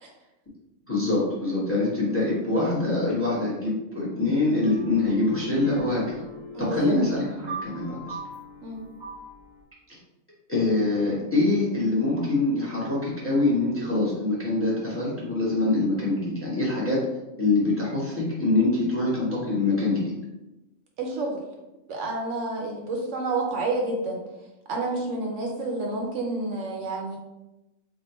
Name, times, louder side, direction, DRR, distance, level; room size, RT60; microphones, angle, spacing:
voice 1, 0.9-6.0 6.6-8.2 10.5-17.0 17.4-20.1, left 2 dB, 10° left, -6 dB, 0.8 m, -24 dB
Piano Playing, 4.6-9.6, right 1 dB, 25° right, 0.6 m, -40 dB
voice 2, 6.5-6.9 8.6-8.8 21.0-21.4 21.9-24.2 24.7-27.2, right 2 dB, 65° right, 0 dB, 0.9 m, -29 dB
3.5 x 2.2 x 4.1 m, 0.99 s
omnidirectional pair, 1.4 m